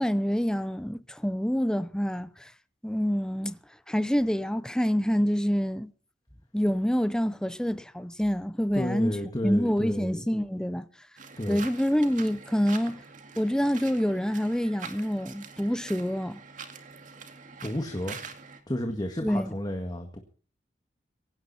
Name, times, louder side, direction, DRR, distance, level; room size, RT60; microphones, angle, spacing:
voice 1, 0.0-2.5 2.8-3.6 3.9-5.9 6.5-9.2 9.4-10.9 11.5-13.0 13.4-16.4 19.2-19.5, equal, 5° left, 0.7 m, -27 dB
voice 2, 8.7-10.3 11.4-11.6 17.6-18.2 18.7-20.2, left 1 dB, 25° left, 1.9 m, -32 dB
sound 1, 11.2-18.6, right 5 dB, 50° right, 2.3 m, -45 dB
18.0 x 16.5 x 4.3 m
head